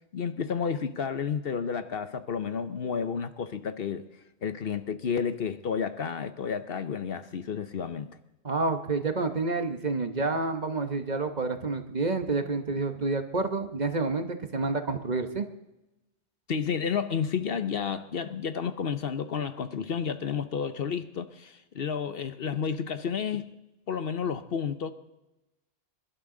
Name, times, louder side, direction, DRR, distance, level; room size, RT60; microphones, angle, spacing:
voice 1, 0.1-4.0 4.4-8.2 16.5-23.5 23.9-24.9, left 6 dB, 60° left, 11 dB, 1.0 m, -31 dB
voice 2, 8.4-15.5, right 3 dB, 40° right, 7 dB, 1.2 m, -29 dB
27.0 x 12.0 x 3.8 m, 0.97 s
omnidirectional pair, 1.1 m